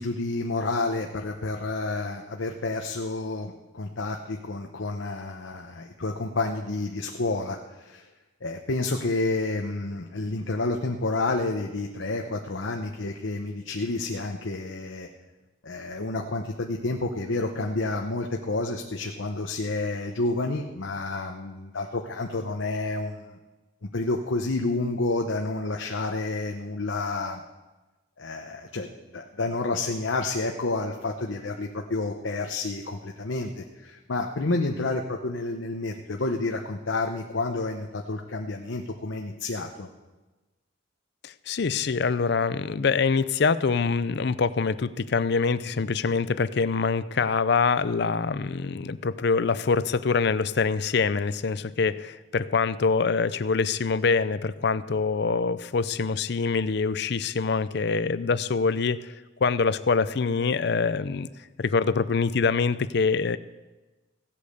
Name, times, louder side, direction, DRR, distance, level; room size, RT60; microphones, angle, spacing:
voice 1, 0.0-8.0 8.4-15.1 15.6-23.2 23.9-27.4 28.2-28.9 29.1-39.9, left 2 dB, 85° left, 3 dB, 0.9 m, -29 dB
voice 2, 41.2-59.1 59.4-61.3 61.6-63.4, left 4 dB, 60° left, 15 dB, 0.5 m, -25 dB
16.5 x 8.5 x 6.7 m, 1.2 s
head